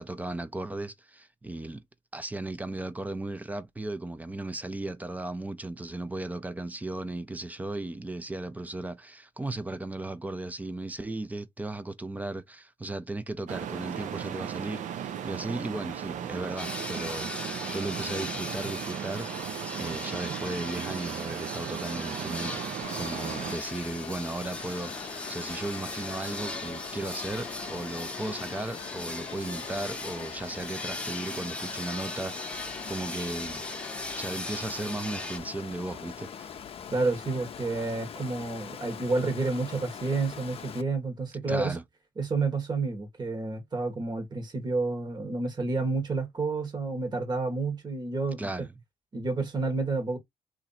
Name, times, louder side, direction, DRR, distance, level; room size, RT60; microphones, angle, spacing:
voice 1, 0.0-1.8 2.1-19.3 19.7-22.6 23.0-33.7 34.2-36.6 41.5-41.8 48.4-48.7, right 2 dB, 10° right, 0.4 m, -36 dB
sound 1, 13.5-23.6, right 9 dB, 65° right, 0.5 m, -36 dB
sound 2, 16.6-35.4, left 2 dB, 10° left, 0.8 m, -38 dB
Water, 22.8-40.8, left 8 dB, 45° left, 0.5 m, -42 dB
voice 2, 36.9-41.8 42.2-48.5 49.1-50.2, right 3 dB, 30° right, 1.1 m, -30 dB
3.0 x 2.5 x 4.0 m
cardioid pair, 105°, 14 cm